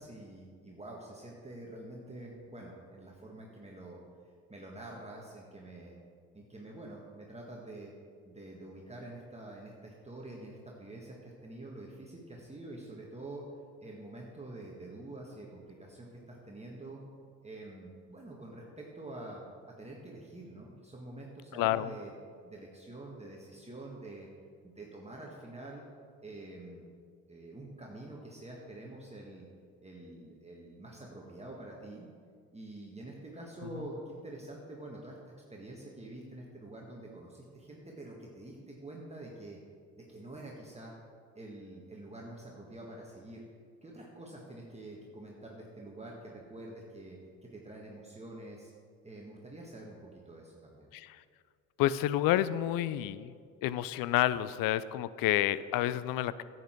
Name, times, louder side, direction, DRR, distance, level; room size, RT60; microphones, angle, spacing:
voice 1, 0.0-4.0 4.5-6.0 6.3-7.9 8.2-13.4 13.8-17.0 17.4-22.1 22.4-24.3 24.6-25.8 26.2-26.8 27.3-29.5 29.8-32.1 32.5-35.2 35.5-39.6 39.9-40.9 41.3-43.4 43.8-48.7 49.0-50.9, right 2 dB, 15° right, -2 dB, 1.7 m, -47 dB
voice 2, 21.5-21.9 50.9-51.2 51.8-53.3 53.6-56.4, left 13 dB, 65° left, 16 dB, 0.5 m, -29 dB
10.5 x 8.1 x 4.6 m, 2.1 s
hypercardioid pair, 60°, 37 cm